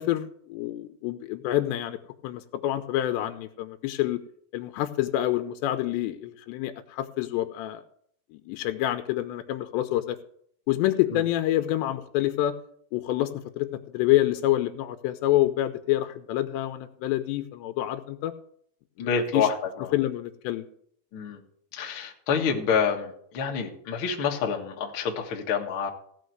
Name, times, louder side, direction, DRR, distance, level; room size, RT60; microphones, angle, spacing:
voice 1, 0.0-2.0 2.2-4.2 4.5-7.8 8.3-10.2 10.7-12.5 12.9-13.7 13.9-18.3 19.0-19.5 19.9-20.6, left 14 dB, 90° left, 8 dB, 2.9 m, -27 dB
voice 2, 19.0-19.9 21.1-21.4 21.7-25.9, left 6 dB, 60° left, 1 dB, 1.3 m, -27 dB
16.0 x 5.8 x 7.8 m, 0.64 s
omnidirectional pair, 4.9 m